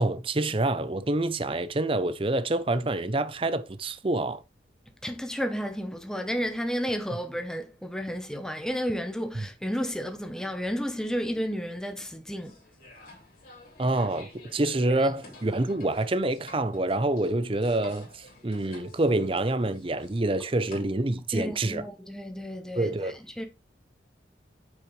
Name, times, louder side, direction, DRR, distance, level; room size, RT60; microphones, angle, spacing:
voice 1, 0.0-4.4 9.3-9.5 13.8-21.8 22.7-23.1, right 2 dB, 30° right, 0.6 m, -27 dB
voice 2, 5.0-12.5 21.3-23.4, equal, 5° left, 0.8 m, -32 dB
sound 1, 12.4-20.8, left 2 dB, 50° left, 3.3 m, -50 dB
8.4 x 6.2 x 3.2 m
head